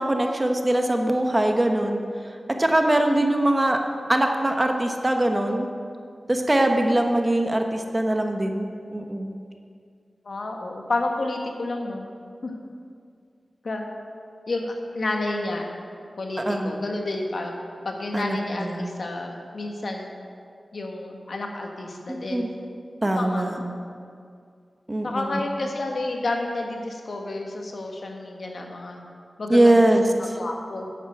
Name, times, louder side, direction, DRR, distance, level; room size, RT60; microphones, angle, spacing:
voice 1, 0.0-2.0 2.5-3.8 4.1-5.7 6.3-9.3 16.4-16.8 18.1-18.8 22.1-22.5 23.0-23.6 24.9-25.3 29.5-30.0, right 1 dB, 30° right, 4 dB, 1.2 m, -22 dB
voice 2, 10.2-12.1 12.4-12.5 13.6-13.8 14.5-15.7 16.2-17.5 17.8-20.1 20.7-22.5 23.0-23.9 25.0-29.0 29.4-30.9, left 2 dB, 70° left, 2 dB, 1.4 m, -30 dB
9.3 x 8.4 x 6.4 m, 2.3 s
cardioid pair, 40°, 0 cm